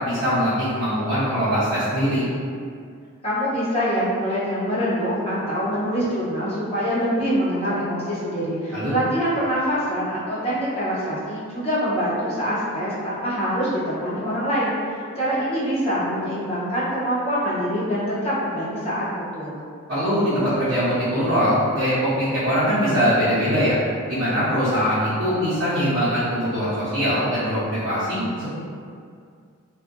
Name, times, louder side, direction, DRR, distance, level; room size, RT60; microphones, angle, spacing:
voice 1, 0.0-2.2 8.7-8.9 19.9-23.8 24.1-28.5, equal, 55° right, -14 dB, 0.8 m, -22 dB
voice 2, 3.2-19.6, equal, 25° left, -9 dB, 0.6 m, -25 dB
2.5 x 2.4 x 2.5 m, 2.2 s
head